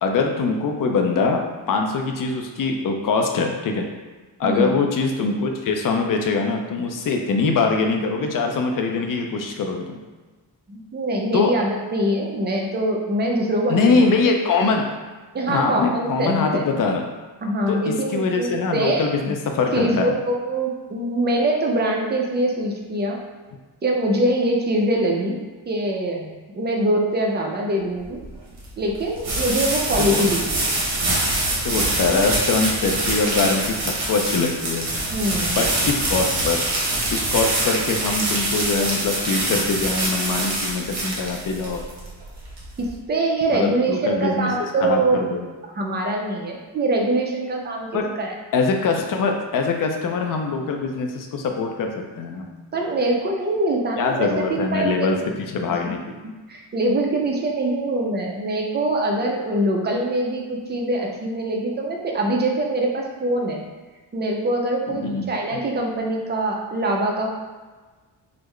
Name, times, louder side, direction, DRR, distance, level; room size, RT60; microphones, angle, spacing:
voice 1, 0.0-3.9 4.4-10.0 11.3-11.5 13.7-14.8 15.4-17.0 17.7-20.1 30.1-30.3 31.0-31.2 31.6-34.9 35.5-36.7 37.1-41.9 43.5-45.5 47.9-48.1 48.5-52.5 54.0-56.1 64.9-65.6, left 4 dB, 50° left, 3 dB, 0.5 m, -23 dB
voice 2, 4.4-4.8 10.7-14.0 14.6-14.7 15.3-16.7 17.4-19.1 19.7-23.2 23.8-25.4 25.7-28.2 28.8-30.8 35.1-35.6 42.8-45.2 45.7-48.3 52.7-55.1 55.7-55.8 56.5-63.6 64.1-67.3, right 1 dB, 25° right, 0 dB, 0.5 m, -23 dB
sound 1, 28.0-42.9, right 2 dB, 60° right, 1.1 m, -25 dB
3.7 x 2.1 x 3.1 m, 1.3 s
cardioid pair, 115°, 44 cm